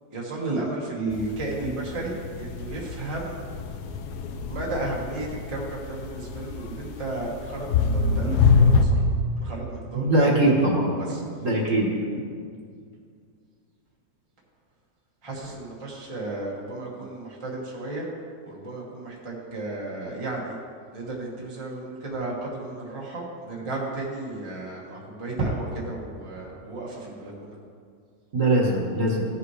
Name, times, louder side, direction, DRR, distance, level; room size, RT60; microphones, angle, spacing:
voice 1, 0.1-3.4 4.5-11.2 15.2-18.1 18.4-20.6 20.9-27.6, right 2 dB, 20° right, -4 dB, 1.3 m, -33 dB
sound 1, 1.1-8.8, left 5 dB, 70° left, 1.1 m, -25 dB
voice 2, 9.9-10.9 11.4-11.9 28.3-29.2, right 1 dB, 45° right, -3 dB, 1.8 m, -21 dB
16.0 x 5.9 x 3.2 m, 2.1 s
omnidirectional pair, 1.9 m